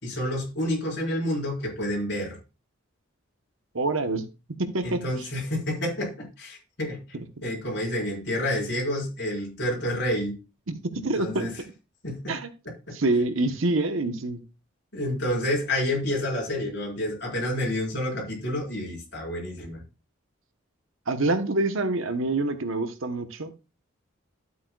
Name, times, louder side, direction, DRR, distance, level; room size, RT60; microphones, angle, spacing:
voice 1, 0.0-2.4 4.8-7.0 7.4-10.4 10.9-11.5 12.0-12.4 14.9-19.8, left 1 dB, 55° left, -3 dB, 4.2 m, -29 dB
voice 2, 3.7-4.2 4.6-5.0 10.7-11.5 12.3-12.5 12.9-14.4 21.1-23.5, right 2 dB, 75° right, 9 dB, 1.0 m, -26 dB
12.0 x 8.2 x 2.3 m, 0.29 s
head